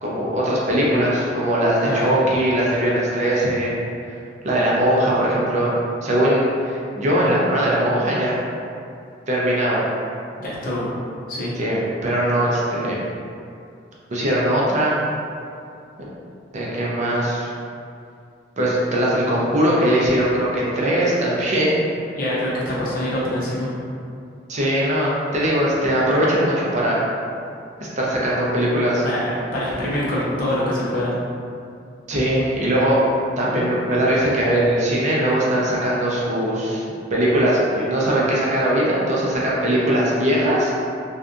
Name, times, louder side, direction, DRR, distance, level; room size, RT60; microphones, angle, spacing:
voice 1, 0.0-3.7 4.4-5.7 6.0-8.4 9.3-9.9 11.6-13.0 14.1-15.0 16.5-17.5 18.6-21.8 24.5-27.0 28.0-29.0 32.1-33.0 33.4-36.8 37.1-40.7, right 1 dB, 40° right, -6 dB, 0.4 m, -20 dB
voice 2, 1.8-2.2 10.4-10.9 11.3-11.5 22.1-23.7 29.0-31.1, left 1 dB, 50° left, -7 dB, 0.6 m, -24 dB
2.6 x 2.3 x 2.4 m, 2.5 s
head